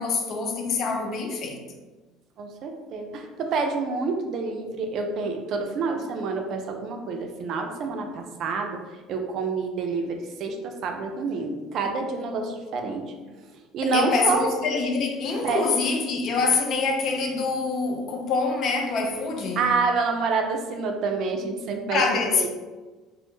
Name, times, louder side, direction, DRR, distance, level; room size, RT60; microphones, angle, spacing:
voice 1, 0.0-1.6 13.8-19.7 21.9-22.5, left 4 dB, 55° left, 0.4 m, -25 dB
voice 2, 2.4-8.8 9.1-13.0 13.7-14.5 15.4-15.6 19.6-22.5, right 4 dB, 60° right, 0.4 m, -28 dB
2.0 x 2.0 x 3.0 m
hypercardioid pair, 70°, 0 cm